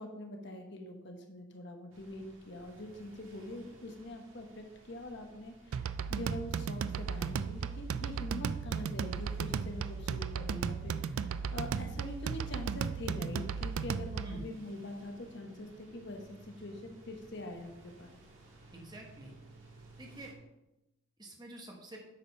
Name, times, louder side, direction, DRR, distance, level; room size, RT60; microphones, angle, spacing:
voice 1, 0.0-18.1, left 1 dB, 55° left, 3 dB, 1.1 m, -44 dB
sound 1, 1.9-20.3, right 1 dB, 70° right, 1.7 m, -58 dB
sound 2, 5.7-14.5, right 6 dB, 90° right, 0.4 m, -35 dB
voice 2, 18.7-19.3 20.0-20.3 21.2-22.0, right 1 dB, 20° right, 0 dB, 1.3 m, -47 dB
8.2 x 5.2 x 5.4 m, 0.96 s
head